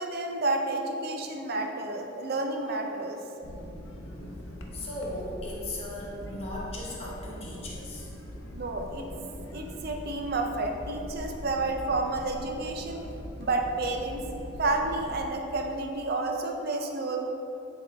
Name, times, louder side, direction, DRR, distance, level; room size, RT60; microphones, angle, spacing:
voice 1, 0.0-3.2 8.5-9.1 9.5-13.0 13.4-14.2 14.6-17.2, right 2 dB, 50° right, 3 dB, 0.5 m, -30 dB
sound 1, 3.4-15.3, left 1 dB, 75° left, 0.7 m, -42 dB
voice 2, 4.7-8.1, left 1 dB, 30° left, -5 dB, 1.1 m, -37 dB
7.8 x 3.6 x 3.4 m, 2.9 s
head